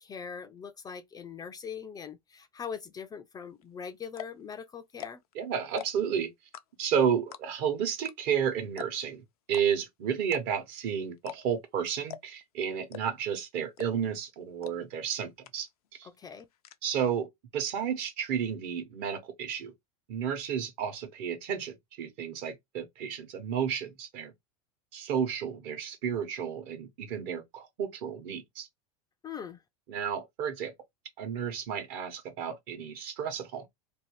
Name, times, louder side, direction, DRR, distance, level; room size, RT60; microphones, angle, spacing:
voice 1, 0.0-5.2 16.0-16.4 29.2-29.6, left 6 dB, 20° left, 0.3 m, -41 dB
sound 1, 3.6-3.7 4.1-4.4 4.9-5.3 5.7-6.1 6.5-6.9 7.3-7.7 8.0-8.1 8.4-8.5 8.8-9.1 9.5-9.6 10.2-10.7 11.2-11.7 12.1-12.4 12.9-13.3 13.8-14.1 14.6-14.7 15.1-15.2 15.4-15.9 16.1-16.8, left 11 dB, 90° left, 0.4 m, -43 dB
voice 2, 5.3-6.3 6.8-16.1 16.8-19.7 20.1-24.3 24.9-28.7 29.9-30.7 31.2-33.7, right 8 dB, 55° right, 1.0 m, -32 dB
2.6 x 2.2 x 3.1 m
hypercardioid pair, 105°, 19 cm